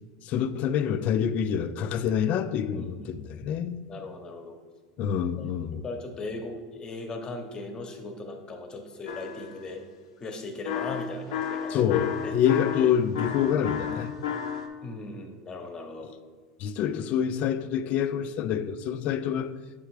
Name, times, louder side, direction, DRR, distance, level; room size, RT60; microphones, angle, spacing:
voice 1, 0.2-3.9 5.0-5.8 11.7-14.1 16.0-16.1 16.6-19.6, left 9 dB, 50° left, 0.4 m, -27 dB
voice 2, 2.7-3.2 3.9-4.6 5.4-5.5 5.7-9.8 10.2-11.8 12.2-12.4 14.8-16.1, left 3 dB, 25° left, 1.0 m, -38 dB
sound 1, 9.1-9.6 10.7-14.7, left 7 dB, 85° left, 0.7 m, -32 dB
7.5 x 3.4 x 4.8 m
supercardioid pair, 110°, 3 cm